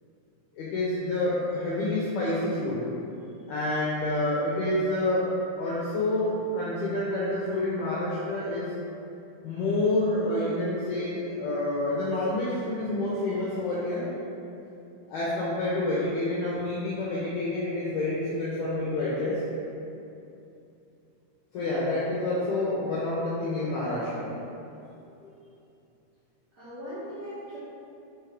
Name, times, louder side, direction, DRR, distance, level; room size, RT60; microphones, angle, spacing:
voice 1, 0.5-2.8 3.5-8.7 9.4-14.1 15.1-19.4 21.5-24.4 25.2-25.3, left 2 dB, 80° left, -7 dB, 2.3 m, -28 dB
voice 2, 26.5-27.6, equal, 75° right, -12 dB, 1.5 m, -40 dB
6.4 x 5.0 x 4.9 m, 2.8 s
omnidirectional pair, 5.9 m